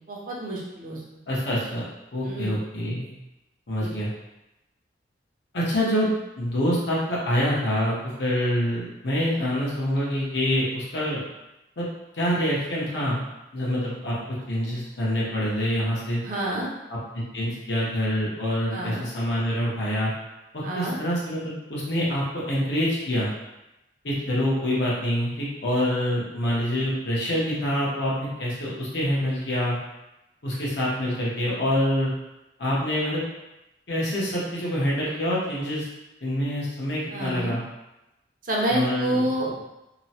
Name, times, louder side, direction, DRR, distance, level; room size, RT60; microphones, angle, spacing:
voice 1, 0.1-1.0 2.2-2.6 3.8-3.9 9.4-9.5 16.2-16.7 18.7-19.0 20.6-20.9 37.1-37.5 38.5-39.5, right 1 dB, 50° right, -3 dB, 0.6 m, -28 dB
voice 2, 1.3-1.9 2.1-3.1 3.7-4.1 5.5-11.2 11.8-11.9 12.1-13.2 13.5-14.2 14.5-16.2 16.9-20.1 20.5-23.3 24.0-29.8 30.4-32.1 32.6-33.2 33.9-35.9 36.2-37.6 38.7-39.2, equal, 75° left, -6 dB, 0.9 m, -26 dB
2.9 x 2.0 x 2.8 m, 0.96 s
head